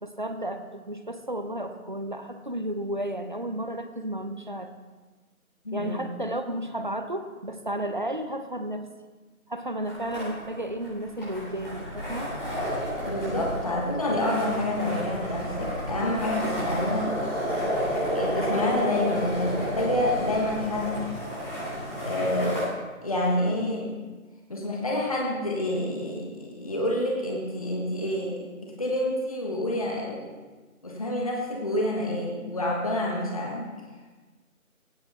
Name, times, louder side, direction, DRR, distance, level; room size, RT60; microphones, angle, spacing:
voice 1, 0.0-4.7 5.7-8.9 9.5-12.3 12.8-13.0, right 1 dB, 35° right, 8 dB, 0.8 m, -33 dB
voice 2, 5.6-6.1 13.1-17.2 17.9-21.1 22.1-22.7 23.0-23.9 24.5-30.3 30.8-33.7, left 1 dB, 25° left, -1 dB, 1.4 m, -28 dB
sound 1, 9.8-22.6, equal, ahead, 1.4 m, -31 dB
16.5 x 16.0 x 3.5 m, 1.3 s
figure-of-eight pair, 165°, 43 cm